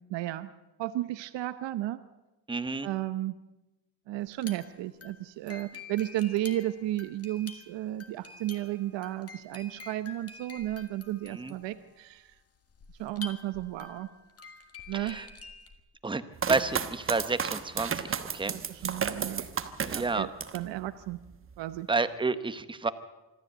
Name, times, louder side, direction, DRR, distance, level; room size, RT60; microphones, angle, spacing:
voice 1, 0.1-0.5 0.8-2.0 2.8-3.4 4.1-12.3 13.0-14.1 14.9-15.2 18.4-19.5 19.9-21.2 21.6-21.9, right 14 dB, 80° right, 12 dB, 0.9 m, -33 dB
voice 2, 2.5-2.9 11.3-11.5 14.9-15.3 16.0-16.2 16.5-18.5 19.9-20.3 21.9-22.9, right 4 dB, 10° right, 12 dB, 0.8 m, -30 dB
sound 1, 4.3-15.8, left 4 dB, 35° left, 1.8 m, -48 dB
sound 2, 16.4-20.7 21.1-21.8, right 7 dB, 30° right, 1.1 m, -33 dB
25.5 x 13.0 x 8.0 m, 1.1 s
cardioid pair, 150°, 43 cm